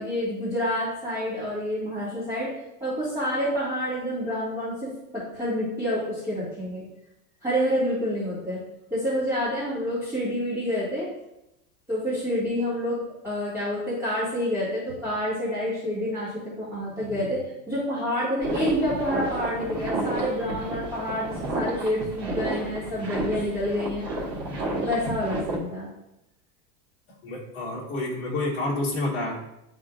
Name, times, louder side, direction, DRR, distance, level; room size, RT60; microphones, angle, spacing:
voice 1, 0.0-2.5 2.8-6.8 7.4-8.6 8.9-11.1 11.9-24.1 24.8-25.9, equal, 5° right, -14 dB, 2.1 m, -28 dB
sound 1, 18.4-25.6, right 1 dB, 30° right, 1.7 m, -31 dB
voice 2, 27.2-29.4, left 2 dB, 25° left, -8 dB, 1.7 m, -29 dB
10.5 x 3.8 x 2.5 m, 0.87 s
supercardioid pair, 170°, 47 cm